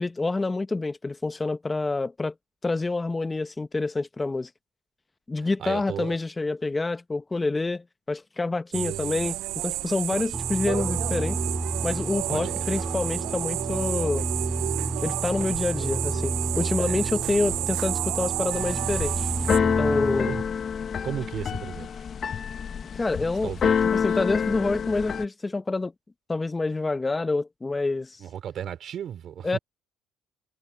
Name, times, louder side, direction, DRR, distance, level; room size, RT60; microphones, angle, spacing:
voice 1, 0.0-2.3 2.6-4.5 5.3-11.4 11.8-14.3 15.0-19.3 19.6-20.3 22.9-23.5 23.9-25.9 26.3-28.2 29.4-29.6, left 3 dB, 20° left, 1.0 m, -27 dB
voice 2, 5.4-6.2 8.7-9.3 10.1-10.2 12.3-12.8 16.7-17.0 20.2-20.4 21.0-21.9 23.4-24.2 28.2-29.6, right 9 dB, 55° right, 4.7 m, -35 dB
sound 1, 8.7-19.6, right 17 dB, 75° right, 0.6 m, -31 dB
sound 2, 10.3-20.4, right 2 dB, 10° right, 5.6 m, -31 dB
Keyboard (musical), 18.5-25.2, left 7 dB, 45° left, 0.9 m, -27 dB
supercardioid pair, 85°, 0 cm